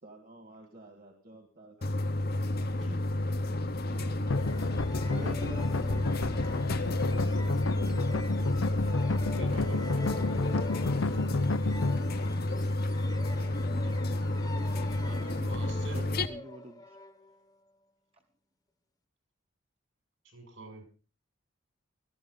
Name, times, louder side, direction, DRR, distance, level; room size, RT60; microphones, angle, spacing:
voice 1, 0.0-2.8, right 2 dB, 45° right, 4 dB, 1.9 m, -53 dB
sound 1, 1.8-16.3, left 1 dB, 50° left, 0.9 m, -31 dB
voice 2, 3.9-4.7 9.3-10.8 11.0-11.2 15.0-16.1 20.2-20.8, right 2 dB, 75° right, 5 dB, 6.5 m, -47 dB
sound 2, 4.3-12.0, left 3 dB, 80° left, 0.7 m, -31 dB
sound 3, 4.3-17.8, left 2 dB, 20° left, 1.1 m, -47 dB
voice 3, 5.0-6.1 6.8-8.2 14.5-14.9 15.4-16.8, right 1 dB, 30° right, 4 dB, 1.0 m, -45 dB
17.5 x 14.0 x 3.9 m, 0.36 s
head